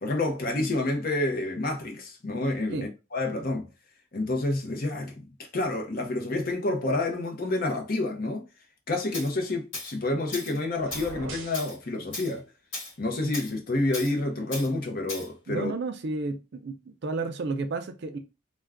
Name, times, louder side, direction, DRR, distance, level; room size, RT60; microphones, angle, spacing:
voice 1, 0.0-2.8 3.1-3.7 4.1-8.4 8.9-12.4 13.0-15.7, left 2 dB, 45° left, 0.6 m, -29 dB
Tools, 9.1-9.3 9.7-9.9 10.3-10.6 10.9-11.1 11.5-11.8 12.1-12.3 12.7-12.9 13.3-13.5 13.9-14.1 14.5-14.7 15.1-15.3, left 2 dB, 70° left, 1.3 m, -37 dB
sound 1, 10.7-11.7, right 2 dB, 75° right, 0.9 m, -40 dB
voice 2, 15.5-16.8 17.0-18.2, right 3 dB, 55° right, 0.4 m, -31 dB
2.4 x 2.2 x 3.4 m
head